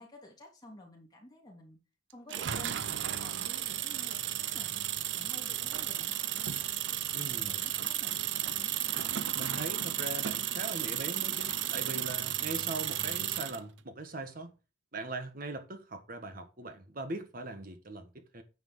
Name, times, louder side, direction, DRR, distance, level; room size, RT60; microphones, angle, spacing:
voice 1, 0.0-1.8 2.1-4.8 5.1-6.8 7.2-8.8, left 1 dB, 20° left, 3.3 m, -52 dB
sound 1, 2.3-13.6, right 12 dB, 70° right, 0.6 m, -34 dB
voice 2, 7.1-7.6 9.3-14.5 14.9-18.4, right 2 dB, 50° right, 1.4 m, -41 dB
9.5 x 5.0 x 4.8 m
head